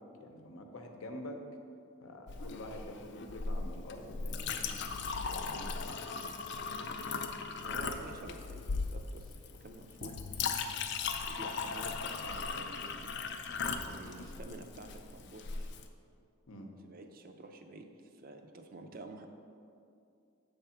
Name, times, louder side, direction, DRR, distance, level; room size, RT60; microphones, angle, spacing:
voice 1, 0.0-1.4 2.0-5.9 16.5-16.7, left 1 dB, 85° left, 3 dB, 0.7 m, -47 dB
Chink clink, 2.3-15.9, left 5 dB, 55° left, 0.4 m, -38 dB
voice 2, 7.6-10.2 11.2-13.1 13.8-15.7 16.8-19.3, right 2 dB, 45° right, 5 dB, 0.4 m, -49 dB
7.2 x 3.4 x 5.7 m, 2.5 s
head